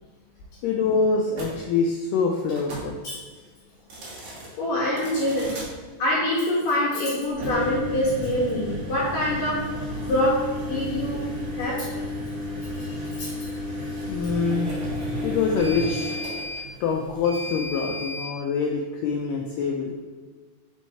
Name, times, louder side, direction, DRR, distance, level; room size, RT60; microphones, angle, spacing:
voice 1, 0.6-3.0 14.1-14.7 15.2-16.2 16.8-19.9, left 5 dB, 85° left, 1 dB, 1.8 m, -25 dB
sound 1, 1.3-1.5 2.5-2.9 3.8-4.5 5.0-5.7 7.3-18.3, left 1 dB, 55° right, 2.1 m, -32 dB
voice 2, 4.6-5.5 6.0-9.6 10.0-11.2 11.5-11.9 12.7-13.4 13.9-14.3, left 1 dB, 70° left, -7 dB, 2.8 m, -25 dB
5.4 x 4.6 x 4.2 m, 1.4 s
omnidirectional pair, 4.2 m